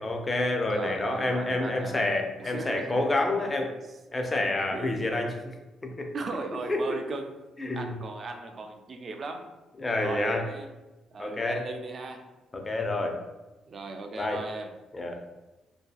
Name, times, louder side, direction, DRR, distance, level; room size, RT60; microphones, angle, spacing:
voice 1, 0.0-3.7 4.1-5.5 5.8-6.1 6.7-7.0 7.6-8.0 9.8-10.4 11.2-11.7 12.5-13.2 14.2-14.4 14.9-15.2, left 2 dB, 25° left, 3 dB, 0.4 m, -28 dB
voice 2, 0.7-2.0 2.4-3.1 4.7-4.9 6.1-7.3 7.7-9.5 10.0-10.7 11.1-12.2 13.7-14.7, right 3 dB, 45° right, 5 dB, 0.3 m, -37 dB
2.7 x 2.3 x 2.3 m, 1.1 s
cardioid pair, 90°, 0 cm